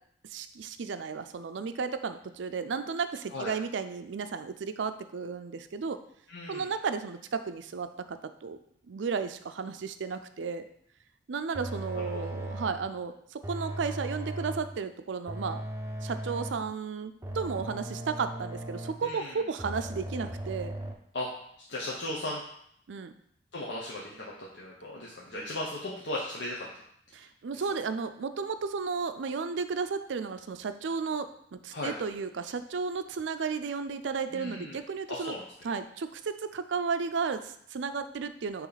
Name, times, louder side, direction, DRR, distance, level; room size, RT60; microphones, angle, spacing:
voice 1, 0.3-6.0 6.5-8.6 8.9-10.6 11.3-15.6 16.0-20.7 22.9-23.1 27.1-35.4 35.6-38.7, right 5 dB, 85° right, 10 dB, 0.5 m, -33 dB
voice 2, 6.3-6.7 19.0-19.3 21.1-21.3 21.7-22.4 23.5-24.3 24.6-26.7 31.7-31.9 34.3-34.8 35.1-35.4, left 1 dB, 70° left, -5 dB, 1.0 m, -36 dB
sound 1, 11.5-12.9 13.4-14.8 15.3-16.7 17.2-19.1 19.6-20.9, right 1 dB, 15° right, 0.6 m, -37 dB
9.1 x 3.1 x 4.0 m, 0.70 s
head